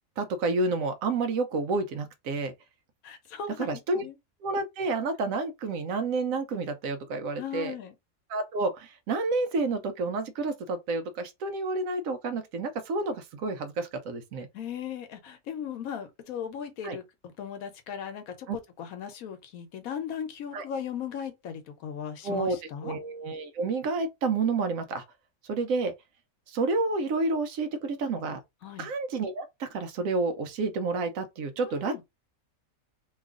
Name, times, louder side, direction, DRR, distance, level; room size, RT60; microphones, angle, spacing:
voice 1, 0.2-2.5 3.6-4.0 4.4-7.7 8.3-14.5 16.8-17.0 18.5-18.6 20.5-20.7 22.2-22.6 22.8-25.0 25.5-25.9 26.5-28.4 28.8-32.0, right 3 dB, 75° right, 1.0 m, -29 dB
voice 2, 3.0-3.7 3.9-4.1 7.4-7.9 14.5-17.0 17.4-23.0 28.6-28.9 31.6-32.0, left 8 dB, 80° left, 1.2 m, -37 dB
2.9 x 2.4 x 3.5 m
omnidirectional pair, 1.5 m